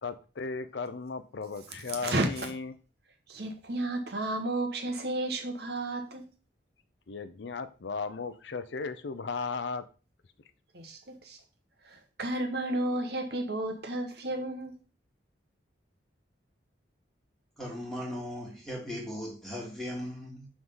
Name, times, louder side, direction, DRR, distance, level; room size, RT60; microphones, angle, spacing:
voice 1, 0.0-2.7 7.1-9.8, left 4 dB, 70° left, 0.6 m, -36 dB
voice 2, 3.3-6.3 10.7-11.4 11.8-14.8, right 2 dB, 55° right, 1.3 m, -32 dB
voice 3, 17.6-20.5, equal, ahead, 2.2 m, -38 dB
6.2 x 3.7 x 5.4 m
head